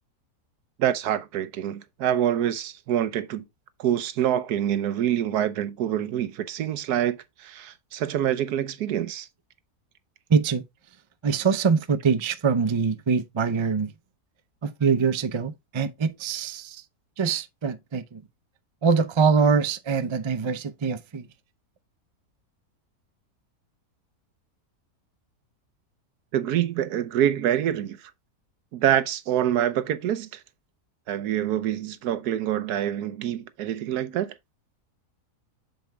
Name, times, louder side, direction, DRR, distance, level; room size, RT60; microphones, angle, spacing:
voice 1, 0.8-3.4 3.8-9.3 26.3-28.0 28.7-30.3 31.1-34.3, right 10 dB, 85° right, 1.3 m, -26 dB
voice 2, 10.3-10.6 11.2-13.9 14.6-16.8 17.2-18.2 18.8-21.3, right 5 dB, 45° right, 0.3 m, -24 dB
7.6 x 7.0 x 2.2 m
omnidirectional pair, 1.6 m